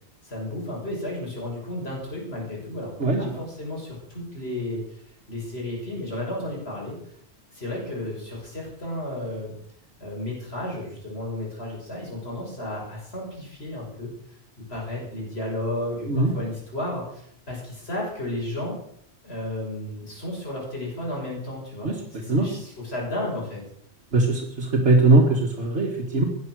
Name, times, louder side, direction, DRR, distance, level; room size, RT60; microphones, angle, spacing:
voice 1, 0.2-5.0 5.3-7.0 7.5-9.5 10.0-14.1 14.7-18.8 19.2-23.6, left 1 dB, 65° left, -3 dB, 7.0 m, -33 dB
voice 2, 3.0-3.4 16.1-16.3 21.8-21.9 22.3-22.5 24.1-26.3, right 2 dB, 75° right, -2 dB, 2.5 m, -20 dB
17.5 x 10.5 x 6.5 m, 0.67 s
omnidirectional pair, 1.1 m